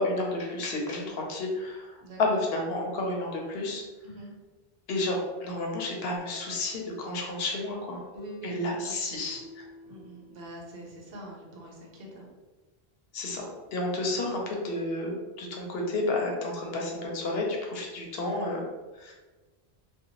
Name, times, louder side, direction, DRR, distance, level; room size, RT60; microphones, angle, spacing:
voice 1, 0.0-3.8 4.9-8.0 8.4-9.6 13.1-18.6 18.9-19.1, left 2 dB, 75° left, 0 dB, 0.8 m, -31 dB
voice 2, 2.0-2.4 4.0-4.3 8.1-8.5 8.8-9.2 9.9-12.3 14.1-14.4 18.2-18.4, right 1 dB, 70° right, -1 dB, 0.9 m, -45 dB
sound 1, 6.2-10.8, left 1 dB, 15° left, 1.2 m, -50 dB
2.7 x 2.2 x 2.8 m, 1.2 s
omnidirectional pair, 1.0 m